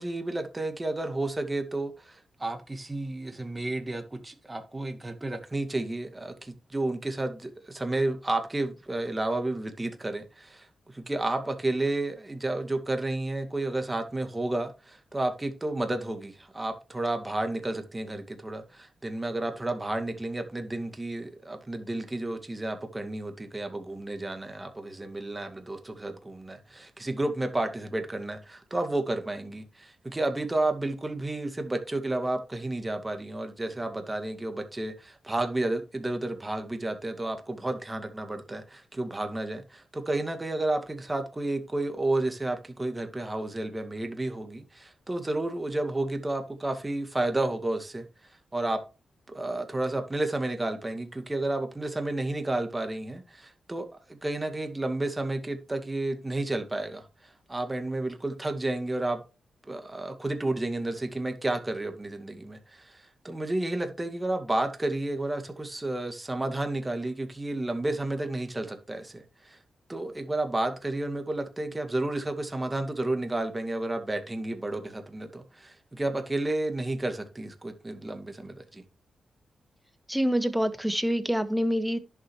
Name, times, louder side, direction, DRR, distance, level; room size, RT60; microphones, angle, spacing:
voice 1, 0.0-48.8 49.3-59.2 59.6-69.6 69.9-78.8, right 2 dB, 25° right, 2.2 m, -31 dB
voice 2, 80.1-82.0, equal, 5° right, 1.6 m, -26 dB
11.0 x 6.7 x 3.2 m
supercardioid pair, 50°, 0 cm